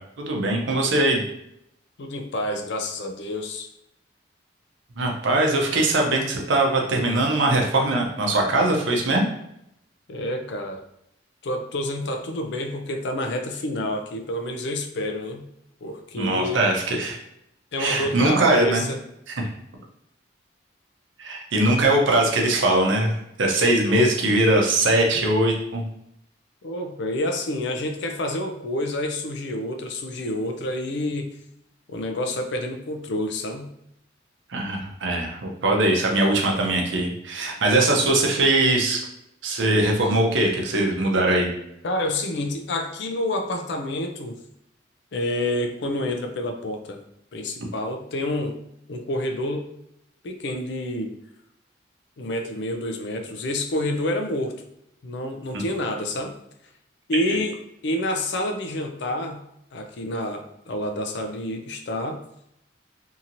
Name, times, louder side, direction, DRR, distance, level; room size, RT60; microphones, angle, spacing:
voice 1, 0.2-1.2 5.0-9.3 16.2-17.2 17.8-18.9 19.3-19.5 21.2-23.1 23.4-25.8 34.5-39.0 39.4-41.5 55.5-55.6, right 2 dB, 80° right, 1 dB, 0.6 m, -21 dB
voice 2, 2.0-3.7 10.1-10.8 11.4-15.4 15.8-16.6 17.7-19.0 26.6-31.3 31.9-33.7 41.8-44.4 45.1-47.0 47.3-48.5 48.9-49.7 50.2-51.1 52.2-54.6 55.0-56.3 57.1-57.6 57.8-59.4 59.7-62.2, left 1 dB, 65° left, 5 dB, 0.4 m, -28 dB
2.8 x 2.7 x 2.5 m, 0.78 s
head